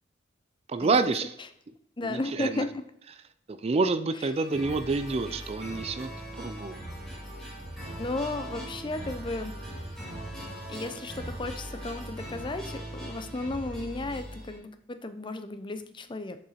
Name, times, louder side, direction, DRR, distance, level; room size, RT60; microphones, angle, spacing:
voice 1, 0.7-1.3 2.0-2.6 3.5-6.1 6.4-6.8, right 3 dB, 30° right, 11 dB, 0.4 m, -28 dB
voice 2, 2.0-2.8 8.0-9.5 10.7-16.4, left 2 dB, 25° left, 10 dB, 0.5 m, -34 dB
sound 1, 4.3-14.6, right 1 dB, 5° left, 2.1 m, -40 dB
6.8 x 5.4 x 4.2 m, 0.73 s
head